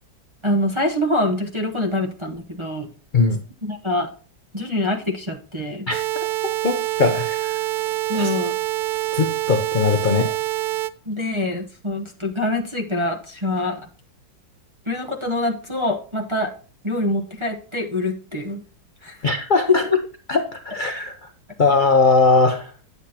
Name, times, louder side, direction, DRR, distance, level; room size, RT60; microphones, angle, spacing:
voice 1, 0.4-2.9 3.6-4.1 4.5-5.9 8.1-8.5 11.1-13.9 14.9-16.5 16.8-18.6 19.0-19.2 19.7-20.0, left 2 dB, 25° right, -1 dB, 0.7 m, -24 dB
sound 1, 5.9-10.9, right 17 dB, 70° right, 0.9 m, -25 dB
voice 2, 6.6-7.6 8.1-8.3 9.1-10.3 19.2-19.8 20.3-21.1 21.6-22.7, left 3 dB, 60° left, 6 dB, 0.5 m, -19 dB
10.0 x 8.1 x 2.9 m, 0.39 s
omnidirectional pair, 2.0 m